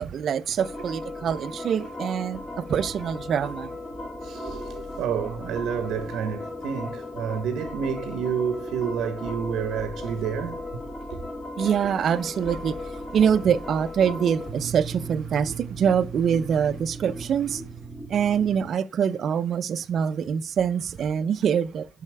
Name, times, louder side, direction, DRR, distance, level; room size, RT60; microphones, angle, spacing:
voice 1, 0.0-3.7 11.6-12.8 13.1-17.6 18.1-21.9, right 8 dB, 60° right, 0.5 m, -24 dB
sound 1, 0.6-18.6, equal, 25° left, 2.8 m, -37 dB
voice 2, 4.2-10.6, right 7 dB, 85° right, 0.9 m, -29 dB
7.4 x 5.6 x 3.3 m
cardioid pair, 90°, 0 cm